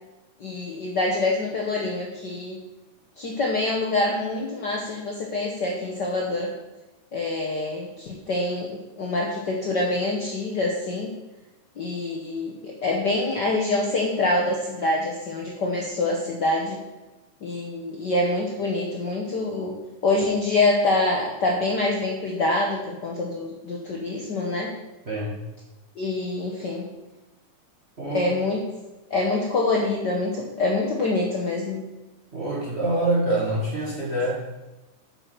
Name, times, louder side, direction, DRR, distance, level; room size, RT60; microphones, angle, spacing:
voice 1, 0.4-2.6 3.2-6.5 7.1-11.1 11.8-16.8 17.4-19.8 20.0-24.7 26.0-26.9 28.1-28.6 29.1-31.8, left 2 dB, 90° left, -1 dB, 0.9 m, -25 dB
voice 2, 25.1-25.4 28.0-28.3 32.3-34.3, right 1 dB, 60° right, -4 dB, 0.6 m, -25 dB
8.9 x 5.6 x 6.0 m, 1.1 s
omnidirectional pair, 3.6 m